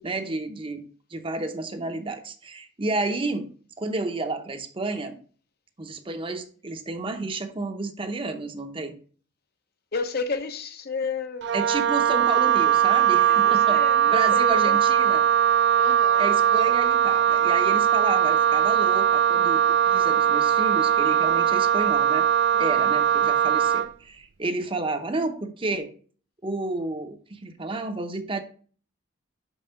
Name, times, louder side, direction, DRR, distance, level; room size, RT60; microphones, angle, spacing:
voice 1, 0.0-3.5 3.8-5.2 5.8-9.0 11.5-13.8 14.1-15.2 16.2-22.3 22.6-25.9 26.4-28.4, right 2 dB, 25° right, 0.7 m, -31 dB
voice 2, 9.9-12.3 13.2-15.1 15.8-16.8 22.5-22.9, left 4 dB, 50° left, 0.8 m, -33 dB
Wind instrument woodwind instrument, 11.4-23.9, right 9 dB, 60° right, 0.4 m, -20 dB
6.0 x 5.5 x 5.7 m
head